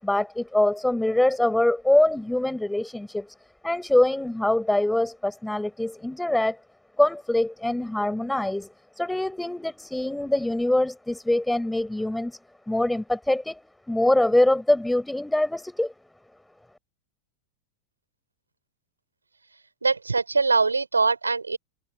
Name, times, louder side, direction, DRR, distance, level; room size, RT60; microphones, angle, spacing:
voice 1, 0.0-3.3 3.6-6.6 7.0-8.7 9.0-12.4 12.7-13.6 13.9-15.9, left 1 dB, 5° left, 7.5 m, -24 dB
voice 2, 19.5-21.6, right 4 dB, 80° right, 5.5 m, -23 dB
open air
figure-of-eight pair, 90°, 0 cm